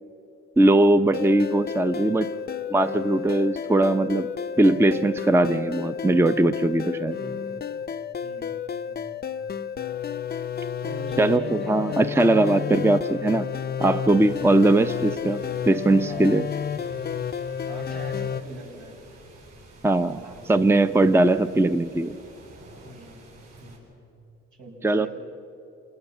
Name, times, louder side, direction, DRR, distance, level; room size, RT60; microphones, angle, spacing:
voice 1, 0.6-2.3 2.7-4.3 4.6-7.2 11.2-13.4 13.8-16.4 19.8-20.2 20.5-22.2 24.8-25.1, right 2 dB, 10° right, 12 dB, 0.6 m, -20 dB
sound 1, 1.1-18.4, left 7 dB, 30° left, 0.6 m, -31 dB
voice 2, 7.2-7.6 8.2-9.2 10.8-13.5 14.1-14.5 16.0-16.6 17.6-19.2 20.1-20.7 22.8-23.3 23.6-23.9 24.6-25.1, right 1 dB, 85° right, -1 dB, 6.6 m, -41 dB
sound 2, 14.2-23.8, right 2 dB, 60° right, 7.7 m, -50 dB
27.5 x 18.5 x 7.2 m, 2.7 s
cardioid pair, 90°, 30 cm